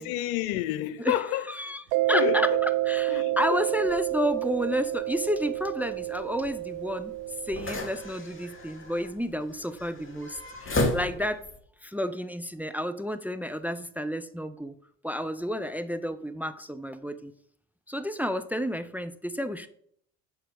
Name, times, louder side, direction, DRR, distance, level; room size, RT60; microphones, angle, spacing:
voice 1, 0.0-1.5 2.1-2.6 3.1-3.6, left 14 dB, 70° left, 0.7 m, -29 dB
voice 2, 1.5-1.8 2.1-2.5 2.9-7.1 7.5-11.4 11.8-14.7 15.0-17.3 17.9-19.7, equal, 5° right, 0.5 m, -31 dB
Mallet percussion, 1.9-8.3, right 18 dB, 65° right, 0.6 m, -29 dB
sound 1, 3.9-11.6, left 1 dB, 25° left, 2.7 m, -36 dB
10.5 x 4.6 x 6.3 m
hypercardioid pair, 60°, 47 cm